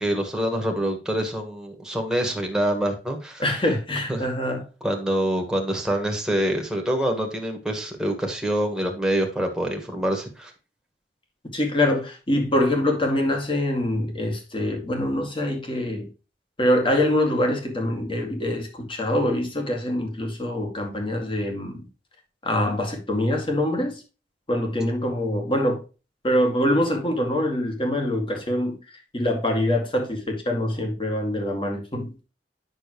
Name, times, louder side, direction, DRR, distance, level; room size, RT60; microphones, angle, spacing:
voice 1, 0.0-3.4 4.1-4.3 4.8-10.5, right 1 dB, 5° right, 1.7 m, -26 dB
voice 2, 3.4-4.6 11.5-16.1 16.6-21.9 22.4-24.0 24.5-25.8 26.2-28.8 29.1-32.1, left 1 dB, 30° left, 2.1 m, -24 dB
8.9 x 6.2 x 3.1 m
head